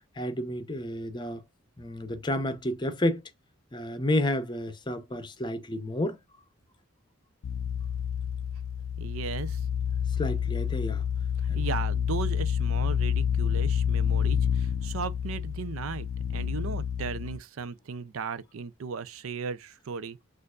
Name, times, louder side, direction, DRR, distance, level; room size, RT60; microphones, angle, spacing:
voice 1, 0.2-1.4 1.8-3.2 3.7-6.2 10.2-11.0 11.5-11.7, left 1 dB, 20° left, 0.6 m, -30 dB
sound 1, 7.4-17.4, left 8 dB, 80° left, 0.3 m, -28 dB
voice 2, 9.0-9.6 11.5-20.2, right 5 dB, 90° right, 0.5 m, -36 dB
6.6 x 2.5 x 2.4 m
head